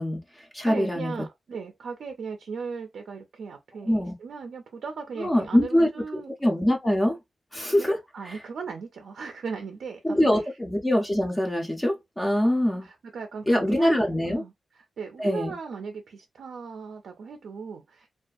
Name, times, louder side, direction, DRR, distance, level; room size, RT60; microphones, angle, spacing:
voice 1, 0.0-1.1 3.9-4.1 5.2-5.9 6.4-7.2 7.5-8.0 8.2-8.4 10.0-12.9 13.5-14.4 15.2-15.5, left 1 dB, 10° left, 0.4 m, -23 dB
voice 2, 0.7-6.3 7.8-10.5 12.4-12.5 12.8-13.9 14.2-18.1, right 5 dB, 75° right, 0.4 m, -38 dB
2.5 x 2.3 x 2.3 m
wide cardioid pair, 170°, 0 cm